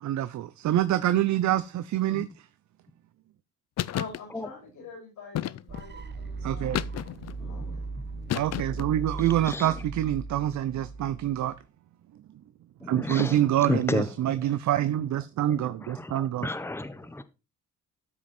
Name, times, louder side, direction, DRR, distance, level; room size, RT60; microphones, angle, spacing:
voice 1, 0.0-2.3 6.4-6.8 8.3-11.5 12.9-16.5, right 12 dB, 70° right, 13 dB, 0.7 m, -26 dB
sound 1, 3.8-4.2 5.3-5.9 6.7-7.4 8.3-8.9, left 12 dB, 60° left, 0.6 m, -31 dB
voice 2, 3.9-6.8 7.4-7.8 14.9-15.0, left 4 dB, 75° left, 0 dB, 6.9 m, -44 dB
sound 2, 5.7-11.6, right 3 dB, 35° right, 1.2 m, -38 dB
voice 3, 7.4-7.8 9.4-9.7 12.8-14.4 15.5-17.2, left 1 dB, 10° left, 11 dB, 1.1 m, -32 dB
13.5 x 6.0 x 4.4 m, 0.29 s
cardioid pair, 90°, 30 cm